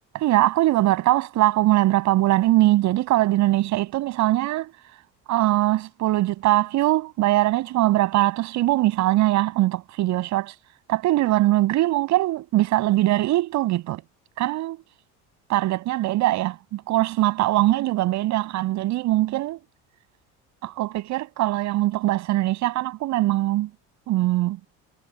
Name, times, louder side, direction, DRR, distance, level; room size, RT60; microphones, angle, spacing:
voice 1, 0.1-4.7 5.3-10.5 10.9-14.0 14.4-14.8 15.5-19.6 20.6-23.7 24.1-24.6, right 16 dB, 55° right, 6.6 m, -21 dB
cardioid pair, 165°, 34 cm